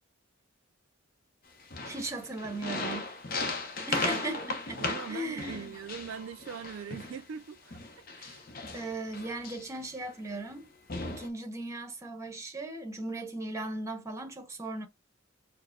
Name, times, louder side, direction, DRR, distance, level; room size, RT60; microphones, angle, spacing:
sound 1, 1.6-7.2 7.7-9.8 10.5-10.6 10.9-11.3, left 3 dB, 45° left, 0.8 m, -36 dB
voice 1, 1.8-3.1 3.9-5.7 8.7-10.7 11.1-14.9, right 2 dB, 15° right, 0.9 m, -37 dB
voice 2, 4.8-8.5, right 7 dB, 65° right, 0.3 m, -42 dB
4.6 x 2.1 x 4.4 m
head